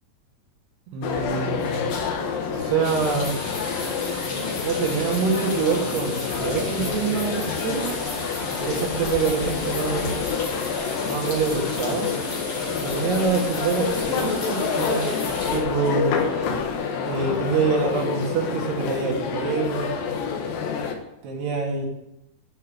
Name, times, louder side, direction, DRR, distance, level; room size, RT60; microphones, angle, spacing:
voice 1, 0.9-1.8 2.5-3.4 4.5-7.9 8.5-10.1 11.1-12.1 12.8-15.0 15.5-16.2 17.1-19.9 21.2-21.9, right 5 dB, 85° right, 0 dB, 4.3 m, -25 dB
sound 1, 1.0-20.9, left 5 dB, 65° left, 2.8 m, -28 dB
sound 2, 2.8-15.6, left 3 dB, 40° left, 2.8 m, -35 dB
11.5 x 5.5 x 8.7 m, 0.85 s
omnidirectional pair, 4.6 m